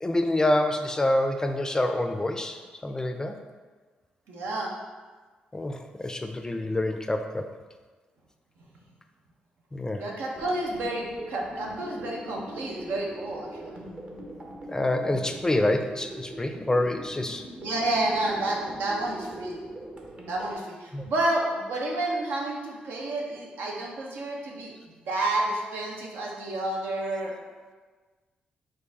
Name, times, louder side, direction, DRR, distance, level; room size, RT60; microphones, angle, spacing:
voice 1, 0.0-3.4 5.5-7.5 9.7-10.0 14.7-17.5 20.9-21.1, left 1 dB, 20° left, 6 dB, 0.4 m, -27 dB
voice 2, 4.3-4.7 9.9-13.8 17.6-19.6 20.3-24.7 25.1-27.3, right 2 dB, 80° right, -2 dB, 0.8 m, -30 dB
sound 1, 10.3-20.6, right 1 dB, 40° right, 0.9 m, -42 dB
4.5 x 2.5 x 4.0 m, 1.4 s
supercardioid pair, 55°, 3 cm